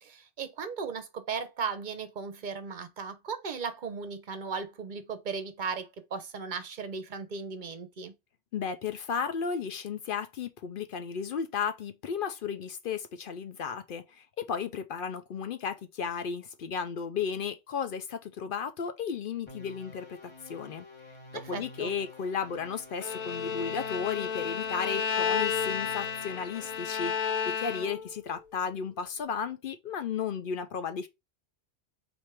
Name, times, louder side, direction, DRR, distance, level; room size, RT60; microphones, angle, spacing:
voice 1, 0.0-8.1 21.3-22.0, right 5 dB, 50° right, 0.8 m, -37 dB
voice 2, 8.5-20.2 20.5-20.9 21.5-31.1, left 6 dB, 60° left, 0.6 m, -34 dB
sound 1, 19.5-27.0, left 2 dB, 25° left, 1.1 m, -49 dB
Bowed string instrument, 23.0-28.2, left 6 dB, 90° left, 0.9 m, -32 dB
4.4 x 2.6 x 4.6 m
omnidirectional pair, 1.1 m